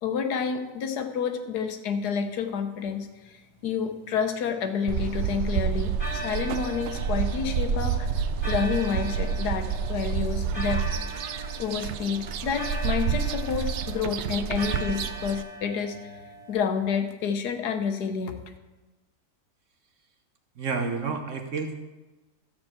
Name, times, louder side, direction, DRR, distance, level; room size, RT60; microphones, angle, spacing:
voice 1, 0.0-8.1 8.4-10.9 11.6-16.2 16.5-18.4, left 6 dB, 75° left, 7 dB, 1.4 m, -29 dB
sound 1, 4.0-5.4 6.0-16.5, equal, 40° left, 4.8 m, -40 dB
sound 2, 4.9-15.4, right 7 dB, 80° right, 0.6 m, -29 dB
voice 2, 20.6-21.7, right 4 dB, 55° right, 5 dB, 1.1 m, -30 dB
13.0 x 4.4 x 7.5 m, 1.2 s
omnidirectional pair, 1.8 m